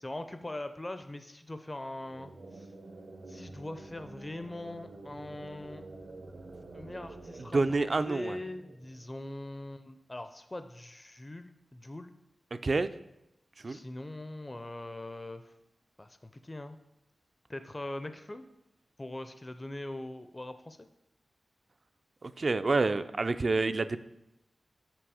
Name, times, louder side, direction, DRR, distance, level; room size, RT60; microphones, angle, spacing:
voice 1, 0.0-2.7 3.3-5.9 6.7-12.1 13.7-15.5 16.0-16.8 17.5-18.5 19.0-20.9, left 1 dB, 30° left, 9 dB, 0.4 m, -42 dB
sound 1, 2.0-9.5, right 2 dB, 75° right, 0.8 m, -48 dB
voice 2, 7.5-8.4 12.6-12.9 13.6-13.8 22.2-24.0, right 3 dB, 55° right, 12 dB, 0.3 m, -28 dB
6.0 x 5.1 x 4.9 m, 0.88 s
cardioid pair, 60°, 0 cm